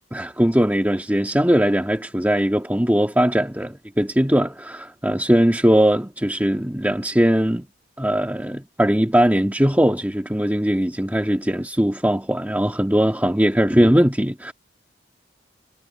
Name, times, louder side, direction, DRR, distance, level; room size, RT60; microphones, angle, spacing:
voice 1, 0.1-7.7 8.0-14.5, equal, 10° right, 1.6 m, -20 dB
head